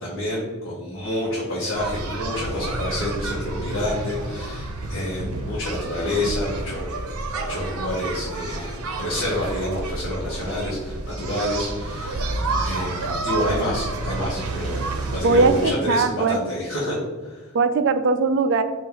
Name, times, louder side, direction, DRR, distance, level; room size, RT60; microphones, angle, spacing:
voice 1, 0.0-6.9 7.5-12.4 12.6-16.9 17.2-17.5, left 1 dB, 60° left, -7 dB, 0.9 m, -28 dB
sound 1, 1.7-15.7, right 2 dB, 85° right, 0.6 m, -29 dB
voice 2, 15.2-16.4 17.5-18.6, right 4 dB, 55° right, 9 dB, 0.3 m, -19 dB
4.3 x 2.5 x 3.7 m, 1.4 s
head